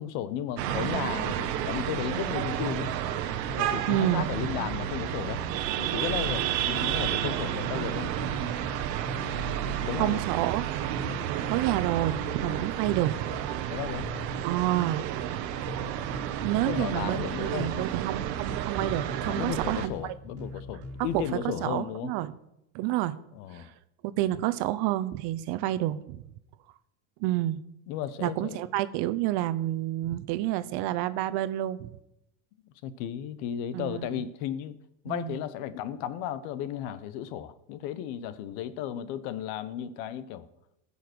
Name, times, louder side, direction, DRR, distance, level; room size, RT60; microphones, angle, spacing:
voice 1, 0.0-2.9 3.6-5.4 5.8-8.1 9.8-10.2 11.0-11.2 12.4-12.6 13.7-14.1 16.5-17.9 19.2-22.1 23.3-23.7 27.9-28.6 32.8-34.8 35.0-40.5, left 10 dB, 65° left, 15 dB, 1.1 m, -34 dB
sound 1, 0.6-19.9, right 11 dB, 80° right, 1.1 m, -31 dB
sound 2, 2.6-21.4, left 1 dB, 30° right, 2.1 m, -43 dB
voice 2, 3.9-4.3 10.0-10.6 11.5-13.3 14.4-15.1 16.4-20.1 21.1-21.2 21.6-22.3 22.7-23.1 23.5-23.7 24.0-26.2 27.2-27.6 28.2-31.8 33.7-34.1 35.1-35.4, right 14 dB, 55° right, 13 dB, 0.9 m, -29 dB
15.0 x 5.7 x 6.1 m, 0.83 s
supercardioid pair, 110°, 49 cm